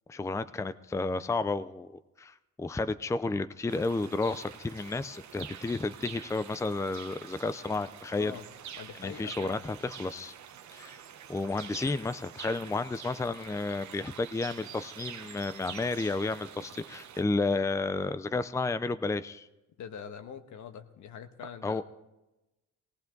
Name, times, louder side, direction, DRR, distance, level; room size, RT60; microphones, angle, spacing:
voice 1, 0.1-1.9 2.2-8.3 9.0-10.3 10.7-11.0 11.3-19.5 21.6-21.8, left 3 dB, 10° left, 13 dB, 0.5 m, -32 dB
sound 1, 3.7-17.2, right 9 dB, 70° right, 1.2 m, -47 dB
voice 2, 8.2-8.5 8.8-9.7 19.8-21.8, left 7 dB, 75° left, 8 dB, 1.4 m, -44 dB
18.5 x 18.0 x 4.0 m, 0.99 s
cardioid pair, 90°, 30 cm